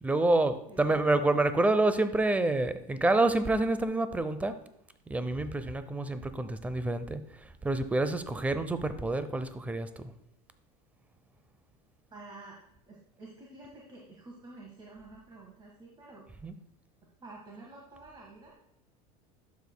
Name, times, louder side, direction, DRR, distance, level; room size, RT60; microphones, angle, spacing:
voice 1, 0.0-4.6 5.1-10.1 16.4-16.5, right 2 dB, 10° right, 11 dB, 0.6 m, -28 dB
voice 2, 0.7-1.0 12.1-12.6 12.9-16.3 17.2-18.5, right 2 dB, 25° right, -2 dB, 1.5 m, -49 dB
11.0 x 7.1 x 2.2 m, 0.78 s
supercardioid pair, 120°, 19 cm